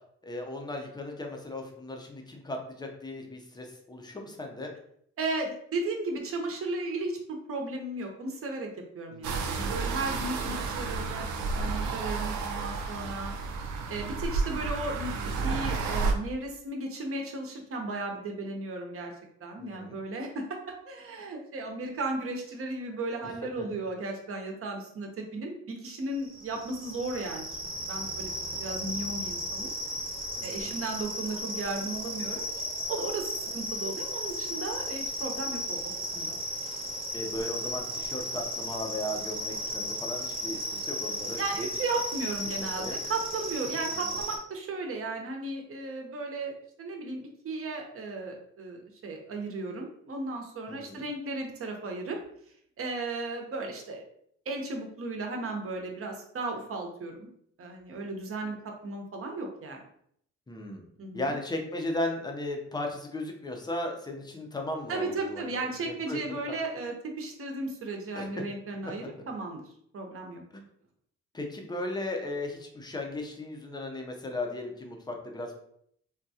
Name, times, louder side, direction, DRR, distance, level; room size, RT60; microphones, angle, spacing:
voice 1, 0.2-4.7 9.1-9.4 19.6-20.0 23.2-23.7 30.4-30.8 37.1-41.7 42.6-43.0 44.1-44.2 50.7-51.0 60.5-60.8 61.1-65.5 65.9-66.6 68.1-68.3 69.0-69.1 70.5-70.6 71.3-75.5, left 1 dB, 15° left, 2 dB, 0.6 m, -36 dB
voice 2, 5.2-8.7 8.9-11.3 11.5-13.3 13.9-19.1 19.4-20.4 20.9-27.5 27.8-29.7 30.4-36.3 41.4-52.2 52.8-54.0 54.5-57.3 57.6-59.8 61.0-61.4 64.9-69.6 69.9-70.4, right 2 dB, 45° right, 2 dB, 0.8 m, -35 dB
sound 1, 9.2-16.1, right 4 dB, 75° right, 0.6 m, -31 dB
sound 2, 26.2-44.4, equal, 15° right, 1.0 m, -35 dB
3.6 x 2.2 x 2.7 m, 0.68 s
cardioid pair, 90°, 30 cm